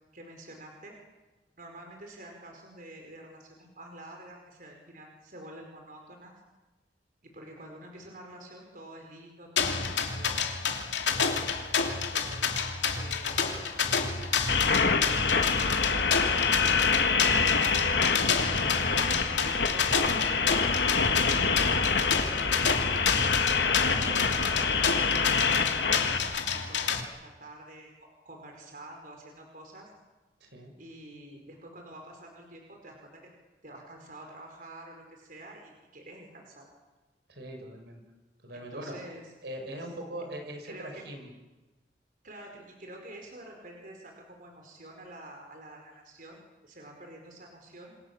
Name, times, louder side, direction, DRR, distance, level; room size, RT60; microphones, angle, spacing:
voice 1, 0.1-0.9 1.6-6.3 7.2-10.6 11.0-16.1 16.4-18.7 19.0-20.6 21.2-27.9 28.2-29.9 30.8-33.3 33.6-36.7 38.5-39.2 40.6-41.0 42.2-48.0, right 1 dB, 50° right, 2 dB, 5.1 m, -48 dB
sound 1, 9.6-27.0, left 6 dB, 90° left, 3.0 m, -29 dB
sound 2, 14.5-26.2, left 5 dB, 65° left, 2.2 m, -26 dB
sound 3, 15.4-25.0, equal, 25° left, 5.2 m, -41 dB
voice 2, 30.4-30.7 37.3-38.0 38.4-38.9 39.4-41.3, right 1 dB, 70° right, 4 dB, 6.0 m, -41 dB
28.0 x 26.5 x 7.4 m, 1.1 s
head